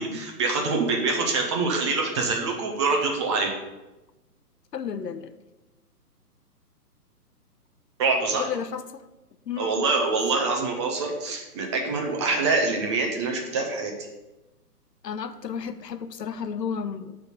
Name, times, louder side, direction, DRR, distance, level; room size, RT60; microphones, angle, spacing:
voice 1, 0.0-3.5 8.0-8.5 9.6-13.9, right 3 dB, 20° right, 1 dB, 0.7 m, -25 dB
voice 2, 4.7-5.3 8.4-9.0 9.5-9.9 15.0-17.2, left 7 dB, 85° left, 11 dB, 0.8 m, -32 dB
7.9 x 3.7 x 6.4 m, 1.0 s
figure-of-eight pair, 135°, 48 cm